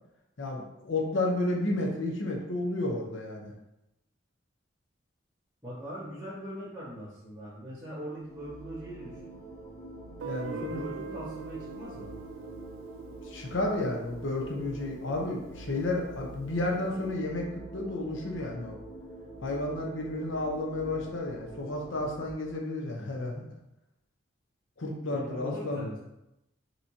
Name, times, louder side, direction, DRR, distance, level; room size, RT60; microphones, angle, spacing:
voice 1, 0.4-3.5 10.2-10.9 13.2-18.8 19.4-23.4 24.8-25.9, left 2 dB, 75° left, 0 dB, 0.9 m, -32 dB
voice 2, 5.6-9.3 10.4-12.1 25.1-26.0, equal, 15° right, -13 dB, 1.4 m, -41 dB
sound 1, 8.0-22.3, right 2 dB, 25° left, 0.7 m, -45 dB
Guitar, 10.2-15.1, right 6 dB, 85° right, 0.4 m, -43 dB
5.6 x 3.0 x 2.8 m, 0.89 s
head